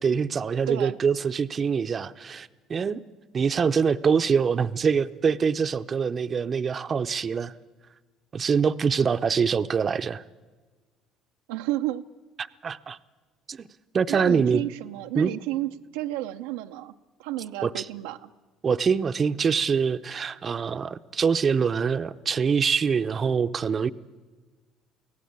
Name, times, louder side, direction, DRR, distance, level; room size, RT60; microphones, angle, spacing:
voice 1, 0.0-3.0 3.3-7.5 8.3-10.2 12.6-13.0 13.5-13.7 13.9-14.6 15.1-15.3 17.6-17.9 18.6-23.9, right 6 dB, 35° right, 11 dB, 0.7 m, -24 dB
voice 2, 11.5-12.0 14.1-16.9 17.2-18.3, right 15 dB, 90° right, 6 dB, 0.7 m, -31 dB
24.5 x 17.0 x 8.7 m, 1.4 s
supercardioid pair, 90°, 0 cm